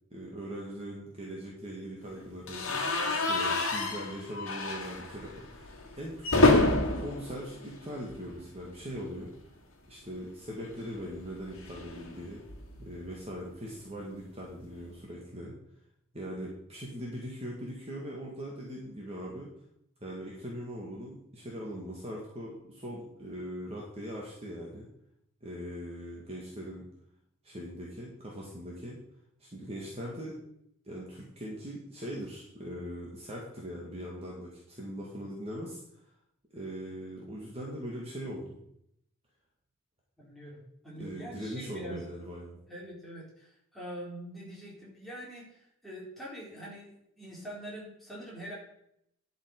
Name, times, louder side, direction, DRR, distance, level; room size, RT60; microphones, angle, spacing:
voice 1, 0.1-2.7 3.1-9.3 9.9-12.4 12.8-15.5 16.1-19.5 20.0-24.9 25.4-26.9 27.4-29.0 29.4-30.4 30.9-35.8 36.5-38.6 40.9-42.6, equal, 30° right, -3 dB, 1.9 m, -41 dB
sound 1, 2.5-8.5 8.8-9.0 9.3-9.4 10.6-13.0, left 2 dB, 65° left, 1.7 m, -29 dB
voice 2, 40.2-42.0 42.7-48.5, right 1 dB, ahead, -6 dB, 3.9 m, -44 dB
11.0 x 5.7 x 5.3 m, 0.74 s
head